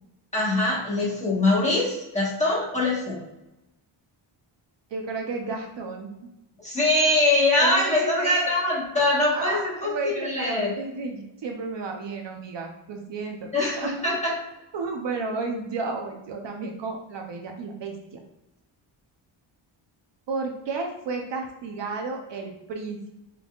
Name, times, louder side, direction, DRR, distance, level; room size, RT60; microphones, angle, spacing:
voice 1, 0.3-3.2 6.6-10.7 13.5-14.3, left 2 dB, 15° left, -5 dB, 1.3 m, -23 dB
voice 2, 4.9-6.3 7.6-8.5 9.3-13.5 13.8-13.9 14.7-18.2 20.3-23.1, right 4 dB, 60° right, 2 dB, 0.7 m, -32 dB
5.0 x 3.5 x 2.4 m, 0.94 s
wide cardioid pair, 165°, 49 cm